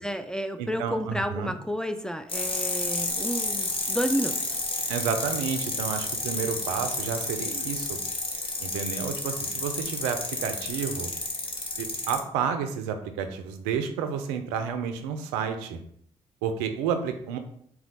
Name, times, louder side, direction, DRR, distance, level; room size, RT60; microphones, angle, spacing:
voice 1, 0.0-4.6, equal, 5° left, 8 dB, 0.4 m, -31 dB
voice 2, 0.6-1.5 4.9-8.0 8.6-11.1 11.8-15.8 16.4-17.4, right 7 dB, 85° right, 8 dB, 0.4 m, -30 dB
sound 1, 2.3-12.2, left 2 dB, 30° left, 1.2 m, -31 dB
4.2 x 2.2 x 4.0 m, 0.64 s
hypercardioid pair, 40°, 17 cm